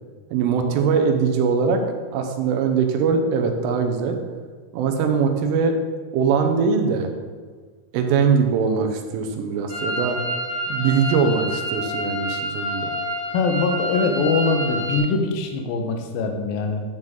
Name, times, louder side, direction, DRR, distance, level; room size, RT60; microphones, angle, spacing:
voice 1, 0.3-1.8 2.1-4.2 4.7-5.8 6.1-7.1 7.9-10.2 10.7-12.9, right 5 dB, 80° right, 4 dB, 3.4 m, -21 dB
sound 1, 9.7-15.0, equal, 50° left, 3.5 m, -28 dB
voice 2, 13.3-16.8, left 4 dB, 85° left, 4 dB, 2.0 m, -22 dB
11.5 x 9.3 x 3.7 m, 1.5 s
omnidirectional pair, 5.8 m